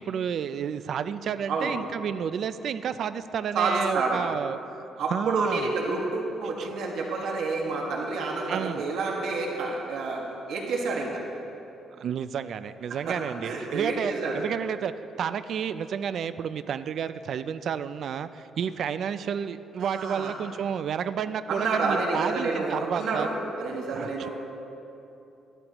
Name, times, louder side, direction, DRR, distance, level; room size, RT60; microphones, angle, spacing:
voice 1, 0.0-4.6 5.1-5.7 6.6-6.7 8.5-8.8 12.0-14.9 15.2-23.3 23.9-24.3, right 8 dB, 60° right, 12 dB, 0.4 m, -31 dB
voice 2, 3.5-4.2 5.0-11.2 12.9-13.2 13.4-14.4 19.8-20.3 21.5-23.3 23.6-24.3, right 3 dB, 80° right, -1 dB, 1.7 m, -29 dB
14.0 x 12.0 x 3.0 m, 2.9 s
cardioid pair, 125°, 0 cm